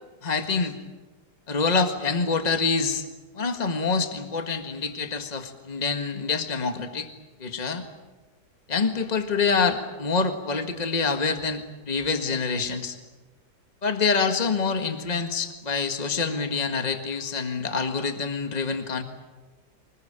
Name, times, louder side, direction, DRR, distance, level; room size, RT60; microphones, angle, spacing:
voice 1, 0.2-0.8 1.5-3.1 3.3-7.1 7.4-7.9 8.7-13.0 13.8-19.0, left 4 dB, 25° left, 6 dB, 1.7 m, -26 dB
25.0 x 20.5 x 8.8 m, 1.2 s
omnidirectional pair, 1.8 m